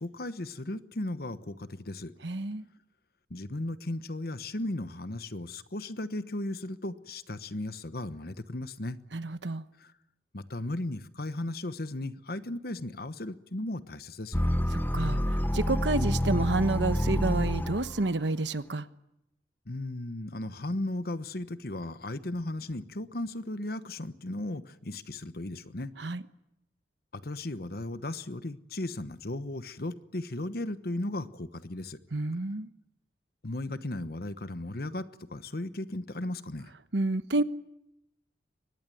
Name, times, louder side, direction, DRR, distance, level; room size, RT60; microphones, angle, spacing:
voice 1, 0.0-2.1 3.3-9.0 9.8-9.9 10.3-14.4 19.7-25.9 27.1-32.0 33.4-36.7, left 1 dB, 55° left, 1.2 m, -36 dB
voice 2, 2.2-2.7 9.1-9.6 14.7-18.9 26.0-26.2 32.1-32.7 36.9-37.4, right 2 dB, 85° right, 1.1 m, -29 dB
sound 1, 14.3-18.1, equal, 10° left, 1.1 m, -28 dB
24.0 x 19.5 x 9.3 m
head